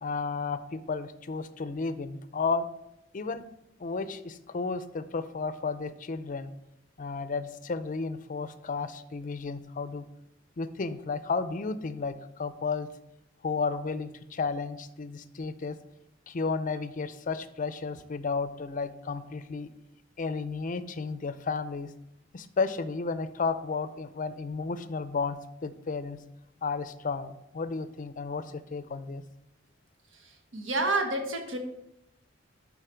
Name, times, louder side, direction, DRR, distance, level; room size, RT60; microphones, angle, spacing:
voice 1, 0.0-2.7 3.1-3.4 3.8-6.5 7.0-10.1 10.6-12.9 13.4-15.8 16.3-19.7 20.2-21.9 22.3-26.2 26.6-29.2, left 4 dB, 45° left, 12 dB, 0.5 m, -33 dB
voice 2, 30.2-31.6, right 2 dB, 75° right, 4 dB, 1.3 m, -29 dB
11.5 x 4.0 x 4.5 m, 0.83 s
head